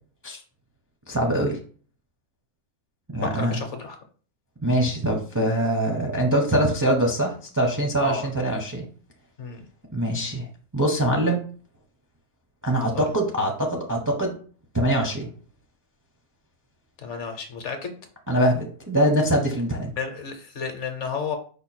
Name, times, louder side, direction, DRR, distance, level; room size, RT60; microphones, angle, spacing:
voice 1, 1.1-1.6 3.1-3.6 4.6-8.8 9.9-10.5 10.7-11.4 12.6-14.3 14.7-15.3 18.3-19.9, right 1 dB, 25° right, 0 dB, 0.4 m, -23 dB
voice 2, 3.3-4.0 8.0-8.3 9.4-9.6 12.9-13.0 17.0-17.9 20.0-21.4, left 5 dB, 60° left, 6 dB, 0.9 m, -32 dB
5.0 x 2.3 x 4.2 m, 0.42 s
omnidirectional pair, 1.5 m